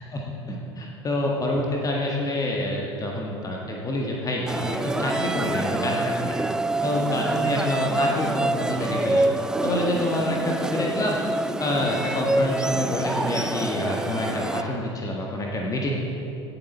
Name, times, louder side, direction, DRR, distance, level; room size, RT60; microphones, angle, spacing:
voice 1, 0.0-6.4 6.8-9.2 9.6-11.2 11.6-15.9, left 1 dB, 25° left, -1 dB, 1.5 m, -27 dB
sound 1, 4.5-14.6, right 2 dB, 5° right, 0.3 m, -26 dB
17.0 x 7.8 x 4.3 m, 2.9 s
figure-of-eight pair, 70°, 14 cm